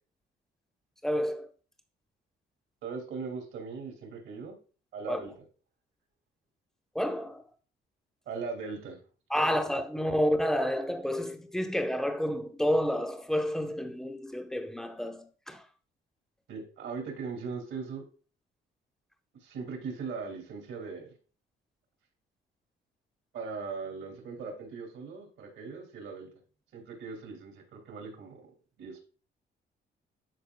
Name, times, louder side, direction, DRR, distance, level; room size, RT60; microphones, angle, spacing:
voice 1, 1.0-1.5 5.1-5.2 6.9-7.4 9.3-15.6, equal, ahead, 0.9 m, -30 dB
voice 2, 2.8-4.6 4.9-5.3 8.3-9.0 9.3-9.6 16.5-18.0 19.4-21.1 23.3-26.3 26.7-28.4 28.8-29.0, right 5 dB, 80° right, 2.5 m, -39 dB
12.0 x 4.3 x 2.3 m
cardioid pair, 90°, 20 cm